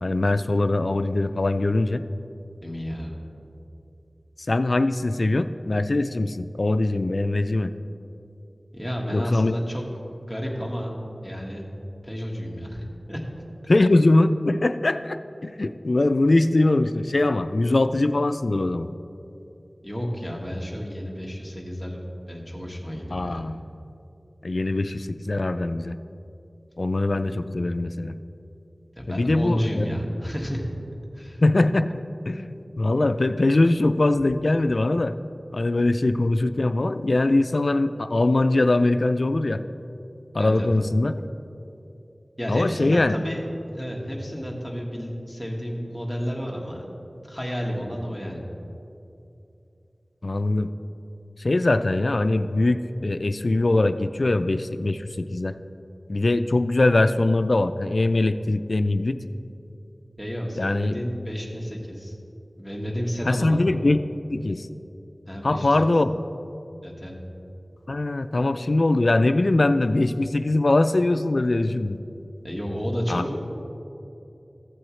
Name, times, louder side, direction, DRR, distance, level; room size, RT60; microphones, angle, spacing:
voice 1, 0.0-2.0 4.5-7.7 9.1-9.5 13.7-18.9 23.1-23.6 24.4-26.0 26.8-28.2 29.1-29.9 31.4-35.2 35.5-39.6 40.3-41.3 42.5-43.1 50.2-50.7 51.4-55.5 56.1-59.2 60.6-60.9 63.3-64.0 64.3-64.7 65.4-66.1 67.9-72.0 73.1-73.2, left 2 dB, 65° left, 10 dB, 0.3 m, -22 dB
voice 2, 2.6-3.1 8.7-9.8 10.2-11.6 12.0-13.2 19.8-22.0 22.3-23.4 29.0-30.6 31.1-31.4 40.4-40.7 42.4-46.9 47.2-48.4 60.2-62.1 62.6-63.6 65.3-65.9 66.8-67.1 72.4-73.4, equal, ahead, -1 dB, 1.6 m, -31 dB
14.5 x 7.6 x 3.2 m, 2.8 s
wide cardioid pair, 55°, 0 cm